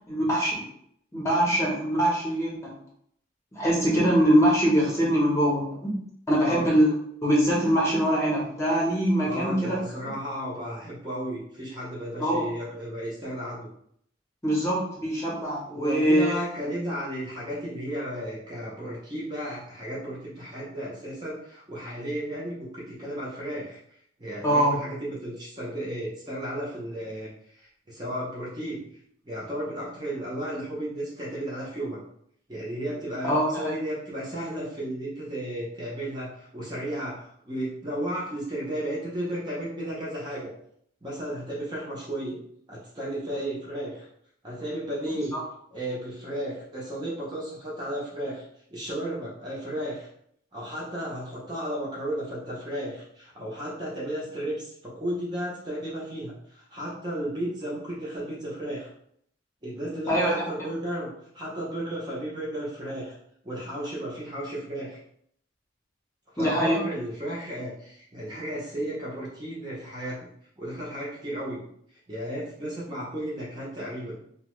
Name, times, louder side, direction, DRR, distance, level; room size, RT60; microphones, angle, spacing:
voice 1, 0.1-0.5 1.1-2.7 3.5-6.0 6.3-6.9 7.2-9.8 12.2-12.4 14.4-16.4 24.4-24.8 33.2-33.8 45.1-45.4 60.1-60.4 66.4-66.8, equal, 15° left, -5 dB, 0.8 m, -23 dB
voice 2, 9.2-13.7 15.7-23.8 24.2-28.8 29.2-32.0 32.5-40.5 41.0-42.4 42.7-44.1 44.4-45.3 45.7-48.4 48.7-50.1 50.5-58.9 59.6-63.1 63.4-65.0 66.3-70.2 70.6-71.6 72.1-74.2, right 1 dB, 20° right, -6 dB, 0.6 m, -34 dB
2.8 x 2.1 x 3.0 m, 0.68 s
head